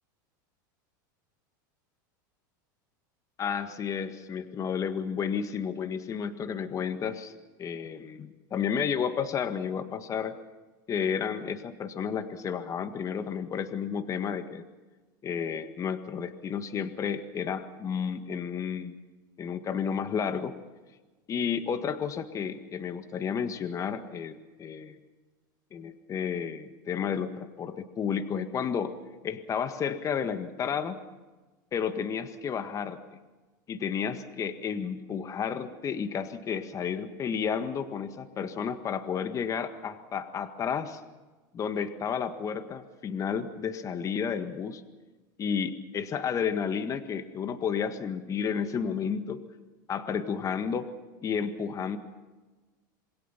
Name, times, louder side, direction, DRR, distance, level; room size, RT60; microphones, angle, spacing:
voice 1, 3.4-7.3 7.6-10.4 10.9-14.6 15.2-19.0 19.4-20.5 21.3-25.0 25.7-28.9 29.2-31.0 31.7-33.0 33.7-41.0 41.5-44.8 45.4-49.5 49.9-50.9 51.2-52.0, left 7 dB, 30° left, 9 dB, 1.7 m, -32 dB
27.5 x 21.5 x 5.8 m, 1.2 s
supercardioid pair, 115°, 11 cm